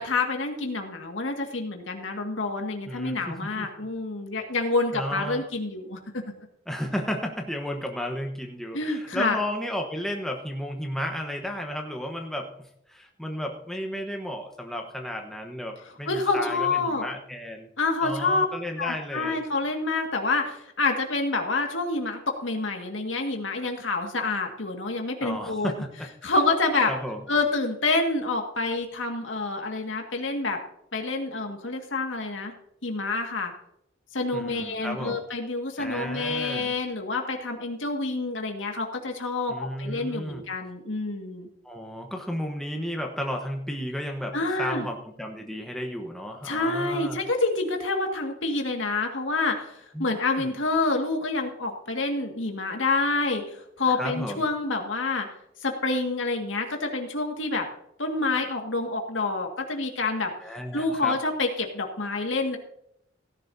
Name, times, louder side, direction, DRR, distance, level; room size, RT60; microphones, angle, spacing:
voice 1, 0.0-6.2 8.7-9.4 16.1-17.0 17.8-18.5 18.8-25.7 26.2-26.9 27.3-30.6 30.9-32.5 32.8-33.5 34.1-41.5 44.3-44.9 46.4-55.3 55.6-57.7 58.0-60.3 60.7-62.6, left 3 dB, 90° left, 3 dB, 1.9 m, -27 dB
voice 2, 2.9-3.8 4.9-5.5 6.7-17.7 18.0-19.4 25.2-26.3 26.9-27.2 34.3-35.2 35.8-36.7 39.5-40.4 41.6-47.2 49.9-50.1 50.4-50.5 53.9-54.4 60.4-61.2, equal, ahead, 1 dB, 1.1 m, -33 dB
17.0 x 11.5 x 2.7 m, 0.74 s
head